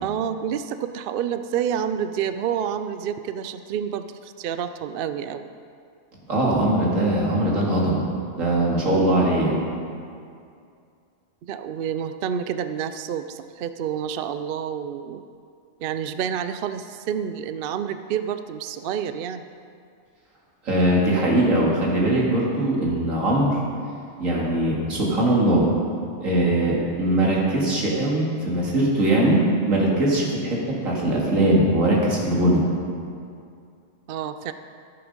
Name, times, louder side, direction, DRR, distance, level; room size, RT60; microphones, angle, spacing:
voice 1, 0.0-5.5 11.4-15.2 15.8-19.5 34.1-34.5, right 8 dB, 60° right, 10 dB, 0.6 m, -28 dB
voice 2, 6.3-8.1 8.4-9.6 20.7-23.6 24.2-25.7 26.2-32.6, right 1 dB, 85° right, -3 dB, 2.6 m, -21 dB
14.0 x 7.8 x 5.3 m, 2.4 s
omnidirectional pair, 1.3 m